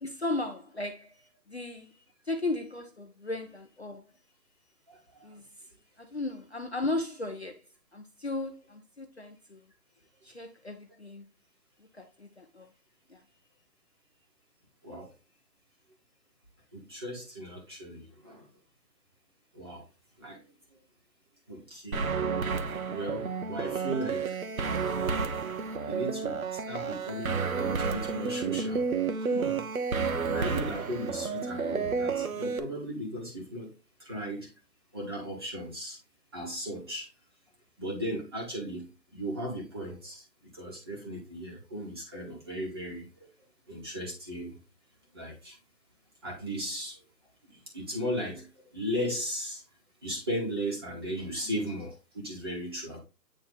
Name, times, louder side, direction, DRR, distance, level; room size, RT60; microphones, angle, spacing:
voice 1, 0.0-1.1 1.5-1.9 2.3-4.0 5.2-5.5 6.0-7.6 7.9-9.6 10.2-11.2 12.0-12.7 13.1-13.2, left 2 dB, 40° left, 0.6 m, -35 dB
voice 2, 4.9-5.4 14.8-15.1 16.7-18.5 19.5-19.9 20.2-20.4 20.7-20.8 21.5-22.1 22.9-24.4 25.8-28.9 29.3-29.6 30.3-33.7 34.0-34.5 34.9-36.0 36.3-37.1 37.8-40.2 40.5-43.3 43.7-44.6 45.1-45.6 46.2-47.0 47.4-49.6 50.0-53.0, equal, 15° right, 1.3 m, -36 dB
sound 1, 21.9-32.6, right 5 dB, 55° right, 0.9 m, -31 dB
8.7 x 3.2 x 3.8 m
hypercardioid pair, 170°, 49 cm